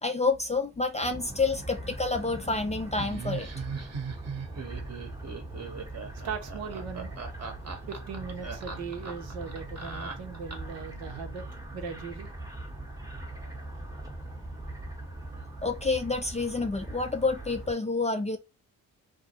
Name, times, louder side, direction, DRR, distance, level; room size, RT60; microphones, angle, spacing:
voice 1, 0.0-3.5 15.6-18.4, left 3 dB, 15° left, 0.3 m, -28 dB
sound 1, 1.0-17.7, right 2 dB, 5° right, 0.8 m, -41 dB
Laughter, 3.0-10.8, right 5 dB, 35° right, 0.9 m, -39 dB
voice 2, 6.2-7.2 7.9-11.4 11.7-12.3, right 6 dB, 80° right, 0.8 m, -38 dB
2.3 x 2.0 x 2.7 m
supercardioid pair, 50°, 45 cm